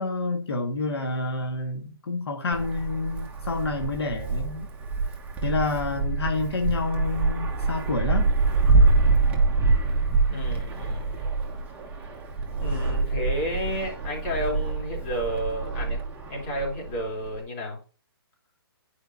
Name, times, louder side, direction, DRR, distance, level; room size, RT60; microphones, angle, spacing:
voice 1, 0.0-4.7 5.4-8.3, left 3 dB, 85° left, 1.6 m, -28 dB
Wind, 2.5-17.4, right 3 dB, 10° right, 1.1 m, -25 dB
voice 2, 10.3-11.2 12.6-17.8, equal, 35° left, 3.2 m, -31 dB
9.9 x 5.1 x 2.6 m
hypercardioid pair, 155°, 13 cm